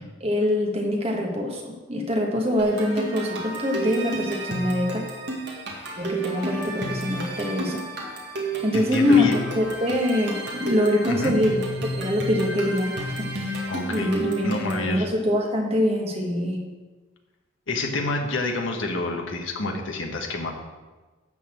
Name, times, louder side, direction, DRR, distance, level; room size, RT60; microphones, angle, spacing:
voice 1, 0.2-5.1 6.0-7.8 8.6-11.6 12.0-13.6 13.9-16.6, left 1 dB, 30° right, 0 dB, 1.5 m, -24 dB
sound 1, 2.6-14.9, right 2 dB, 55° right, 2.0 m, -32 dB
voice 2, 8.7-9.4 11.1-11.3 13.7-14.1 14.4-15.1 17.7-20.5, left 2 dB, 70° left, 2 dB, 1.5 m, -28 dB
12.0 x 4.2 x 7.5 m, 1.3 s
head